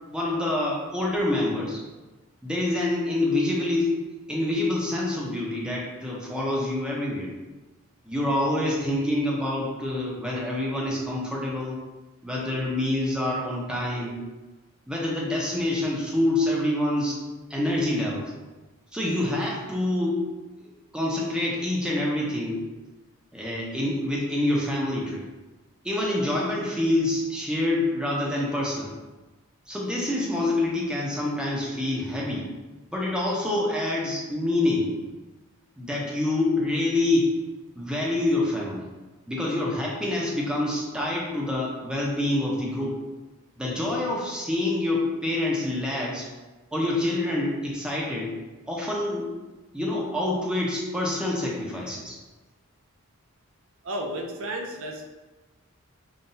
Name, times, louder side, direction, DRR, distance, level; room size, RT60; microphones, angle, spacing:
voice 1, 0.1-1.8 2.4-3.9 4.3-7.3 8.1-11.8 12.2-14.2 14.9-17.2 17.5-18.3 18.9-20.2 20.6-22.6 23.3-25.2 25.8-28.9 29.7-32.5 32.9-34.9 35.8-37.3 37.8-38.9 39.3-43.0 43.6-46.3 46.7-48.3 48.7-49.3 49.7-52.2, left 1 dB, 5° right, -4 dB, 0.6 m, -26 dB
voice 2, 53.8-55.1, right 1 dB, 65° right, 1 dB, 0.5 m, -32 dB
5.4 x 2.2 x 2.6 m, 1.2 s
head